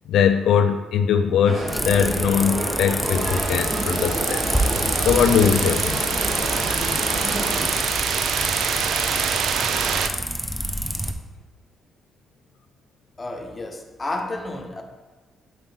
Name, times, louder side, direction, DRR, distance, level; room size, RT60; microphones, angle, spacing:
voice 1, 0.1-4.4 5.0-6.0, left 7 dB, 80° left, 7 dB, 0.4 m, -21 dB
sound 1, 1.5-7.7, right 1 dB, 35° right, 1.5 m, -29 dB
sound 2, 1.7-11.1, equal, ahead, 0.7 m, -27 dB
sound 3, 3.0-10.1, right 7 dB, 75° right, 0.5 m, -27 dB
voice 2, 13.2-14.8, left 2 dB, 25° left, 4 dB, 0.9 m, -31 dB
8.0 x 4.6 x 4.0 m, 1.3 s
cardioid pair, 90°, 0 cm